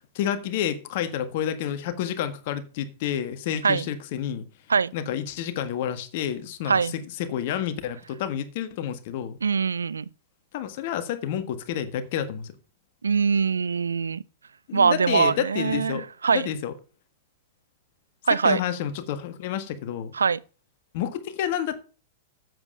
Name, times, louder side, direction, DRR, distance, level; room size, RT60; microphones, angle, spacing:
voice 1, 0.1-4.4 4.9-9.4 10.5-12.5 14.7-16.1 16.3-16.7 18.4-20.1 20.9-21.8, left 9 dB, 55° left, 1.5 m, -29 dB
voice 2, 9.4-10.1 13.0-14.2 14.7-16.5 18.3-18.6 20.1-20.4, right 5 dB, 85° right, 0.4 m, -22 dB
7.9 x 7.6 x 5.5 m
hypercardioid pair, 110°, 0 cm